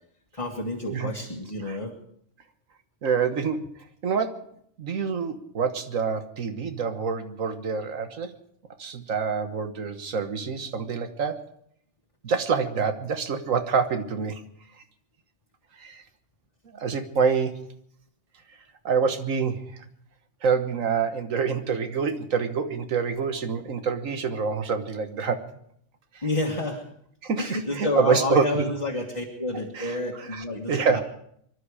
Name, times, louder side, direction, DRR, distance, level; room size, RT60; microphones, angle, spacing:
voice 1, 0.3-1.9 26.2-26.9 27.4-31.0, left 2 dB, 25° left, -1 dB, 1.8 m, -29 dB
voice 2, 3.0-3.7 4.0-4.3 4.8-8.3 8.8-11.4 12.2-14.4 15.8-16.0 16.6-17.6 18.8-19.6 20.4-25.4 27.2-28.4 29.7-29.9 30.3-31.0, right 5 dB, 80° right, 8 dB, 1.7 m, -26 dB
25.0 x 11.5 x 4.9 m, 0.70 s
omnidirectional pair, 1.3 m